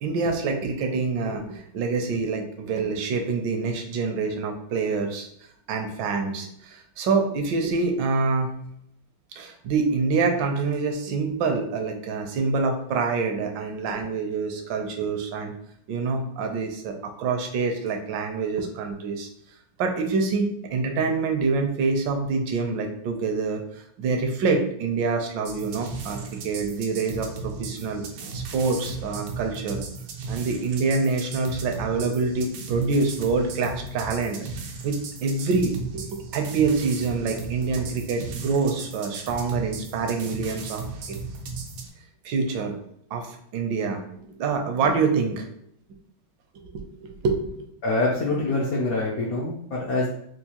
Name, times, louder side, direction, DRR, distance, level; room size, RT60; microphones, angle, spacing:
voice 1, 0.0-5.3 5.7-8.5 9.3-15.5 15.9-19.3 19.8-26.2 26.4-29.8 30.3-34.4 34.8-40.8 42.2-42.7 43.1-45.5 46.6-47.7, right 4 dB, 70° right, 3 dB, 1.2 m, -26 dB
sound 1, 25.4-41.9, right 4 dB, 90° right, 1.6 m, -36 dB
voice 2, 47.8-50.1, left 2 dB, 75° left, -3 dB, 0.8 m, -25 dB
4.6 x 2.3 x 2.9 m, 0.72 s
omnidirectional pair, 2.3 m